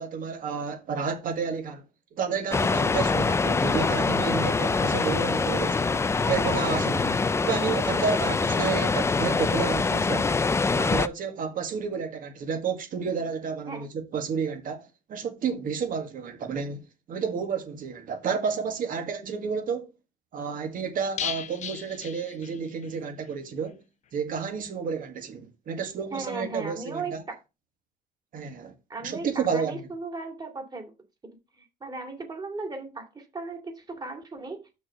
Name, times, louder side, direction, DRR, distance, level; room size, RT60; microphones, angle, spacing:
voice 1, 0.0-1.8 2.1-5.9 6.2-10.3 10.7-16.8 17.1-19.9 20.3-23.8 24.1-27.2 28.3-28.7 29.0-29.9, right 6 dB, 55° right, 1.9 m, -31 dB
sound 1, 2.5-11.1, left 4 dB, 15° left, 0.4 m, -24 dB
sound 2, 21.2-23.0 23.2-23.3 23.7-23.8, left 8 dB, 45° left, 0.8 m, -36 dB
voice 2, 26.1-27.4 28.9-30.9 31.8-34.7, right 3 dB, 25° right, 2.5 m, -36 dB
6.3 x 4.5 x 6.5 m
cardioid pair, 110°, 17 cm